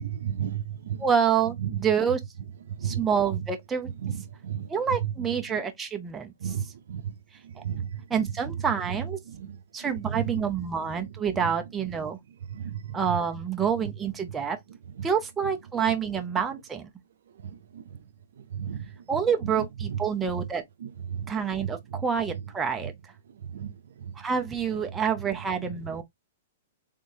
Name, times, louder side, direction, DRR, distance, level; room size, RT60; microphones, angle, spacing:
voice 1, 0.0-1.0 1.6-1.7 2.8-3.0 4.0-4.7 5.0-5.1 6.4-7.1 7.6-8.0 9.3-10.3 12.5-13.0 15.0-15.1 17.4-17.8 18.5-18.9 19.9-20.0 20.8-21.3 21.6-21.7 23.5-23.7 24.0-24.1 25.7-25.8, right 9 dB, 75° right, 0.5 m, -33 dB
voice 2, 1.0-2.2 2.8-3.9 4.7-6.5 8.1-9.2 9.7-12.2 12.9-14.6 15.0-16.9 19.1-20.6 21.3-22.9 24.2-26.0, right 7 dB, 10° right, 0.6 m, -27 dB
3.7 x 3.5 x 2.7 m
hypercardioid pair, 155°, 0 cm